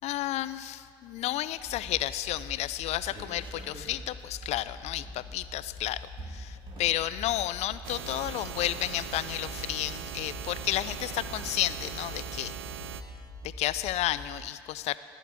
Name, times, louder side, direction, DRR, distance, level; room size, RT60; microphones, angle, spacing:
voice 1, 0.0-6.0 6.3-12.5 13.6-15.0, left 14 dB, 60° left, 15 dB, 0.5 m, -32 dB
sound 1, 1.5-1.9 2.3-2.4 2.6-11.2, right 2 dB, 45° right, 3.0 m, -50 dB
sound 2, 1.6-14.3, left 1 dB, 10° left, 2.4 m, -45 dB
sound 3, 7.8-13.0, right 10 dB, 80° right, 0.6 m, -40 dB
16.0 x 7.2 x 8.3 m, 2.2 s
hypercardioid pair, 70°, 12 cm